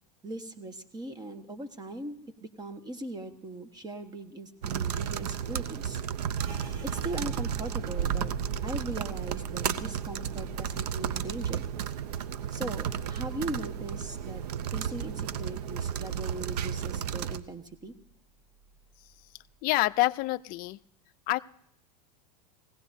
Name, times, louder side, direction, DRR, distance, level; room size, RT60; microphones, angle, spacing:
voice 1, 0.2-6.0 6.8-8.3 8.6-11.7 12.5-14.4 14.7-17.9, right 2 dB, 20° right, 8 dB, 1.3 m, -39 dB
sound 1, 4.6-17.4, right 8 dB, 90° right, 0.7 m, -33 dB
sound 2, 6.4-15.8 16.1-17.3 17.6-18.1 18.6-19.1, right 4 dB, 65° right, 2.0 m, -45 dB
voice 2, 19.6-20.8 21.3-21.4, left 20 dB, 45° left, 16 dB, 0.4 m, -26 dB
20.5 x 16.5 x 2.7 m, 0.71 s
supercardioid pair, 110°, 20 cm